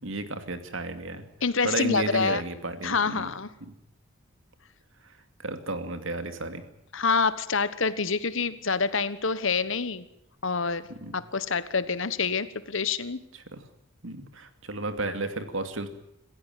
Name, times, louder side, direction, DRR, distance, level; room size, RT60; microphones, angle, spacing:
voice 1, 0.0-1.2 1.6-3.3 3.6-3.7 5.0-5.1 5.4-6.6 10.9-11.1 13.5-13.6 14.0-15.9, right 2 dB, 65° right, 9 dB, 2.6 m, -33 dB
voice 2, 1.4-2.4 2.8-3.5 6.9-10.0 10.4-10.8 11.1-13.2, left 5 dB, 60° left, 14 dB, 1.3 m, -27 dB
27.0 x 15.0 x 9.4 m, 0.80 s
head